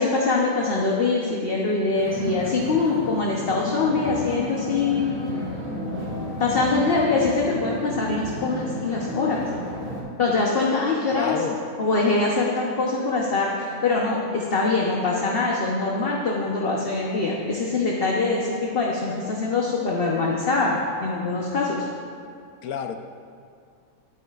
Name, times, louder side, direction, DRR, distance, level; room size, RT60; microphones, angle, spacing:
voice 1, 0.0-5.2 6.4-9.5 10.2-11.4 11.8-21.9, left 3 dB, 45° left, -3 dB, 1.1 m, -23 dB
sound 1, 2.0-10.0, left 1 dB, 35° right, 2.7 m, -32 dB
voice 2, 11.1-11.6 22.6-23.0, left 7 dB, 75° left, 6 dB, 1.2 m, -28 dB
19.0 x 9.2 x 2.5 m, 2.3 s
omnidirectional pair, 1.6 m